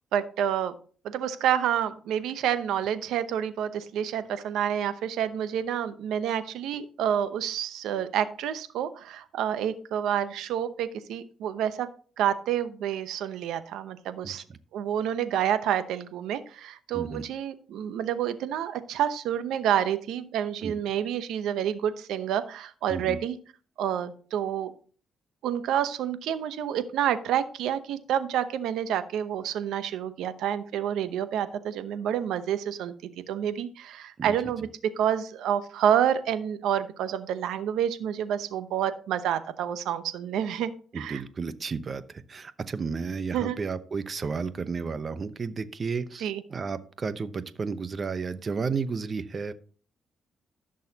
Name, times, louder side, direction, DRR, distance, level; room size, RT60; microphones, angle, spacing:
voice 1, 0.1-0.7 1.0-11.9 12.2-14.4 14.7-23.4 23.8-24.7 25.4-32.9 33.3-34.7 35.0-41.2 43.3-43.6 46.2-46.4, right 9 dB, 85° right, 12 dB, 0.8 m, -28 dB
voice 2, 14.2-14.6 16.9-17.2 20.6-20.7 22.9-23.2 34.2-34.3 40.9-49.5, right 5 dB, 40° right, 13 dB, 0.8 m, -32 dB
15.0 x 6.4 x 2.9 m, 0.42 s
cardioid pair, 90°, 0 cm